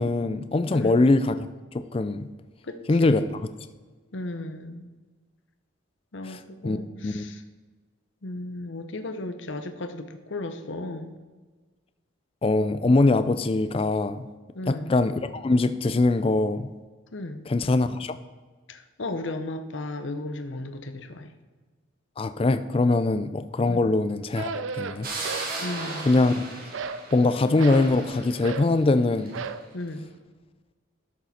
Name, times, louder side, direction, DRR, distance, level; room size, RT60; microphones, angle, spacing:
voice 1, 0.0-2.3 2.9-3.2 6.3-6.8 7.0-7.3 12.4-14.3 14.7-16.7 17.5-18.2 22.2-25.1 25.3-25.4 26.0-26.4 27.1-29.4, left 2 dB, 25° left, 11 dB, 0.3 m, -23 dB
voice 2, 0.7-1.0 2.6-3.4 4.1-4.9 6.1-7.4 8.2-11.1 14.5-14.9 17.1-17.4 18.7-21.3 23.7-23.9 25.6-26.1 29.7-30.1, left 2 dB, 65° left, 8 dB, 0.8 m, -35 dB
sound 1, 24.4-25.5 25.8-26.3 26.7-27.9 28.4-28.7 29.3-29.7, right 5 dB, 70° right, 0.5 m, -34 dB
sound 2, 25.0-29.5, right 3 dB, 45° right, 1.9 m, -36 dB
12.5 x 6.7 x 4.2 m, 1.4 s
head